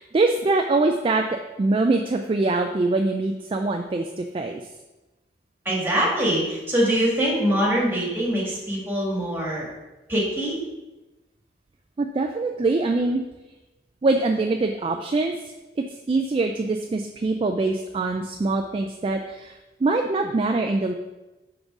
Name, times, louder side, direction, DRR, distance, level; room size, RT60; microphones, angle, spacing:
voice 1, 0.0-4.6 12.0-13.2 14.0-15.4 16.1-20.9, right 3 dB, 30° right, 4 dB, 0.3 m, -23 dB
voice 2, 5.6-9.7 10.1-10.6, equal, 10° right, -4 dB, 1.6 m, -23 dB
5.3 x 3.9 x 5.9 m, 1.1 s
head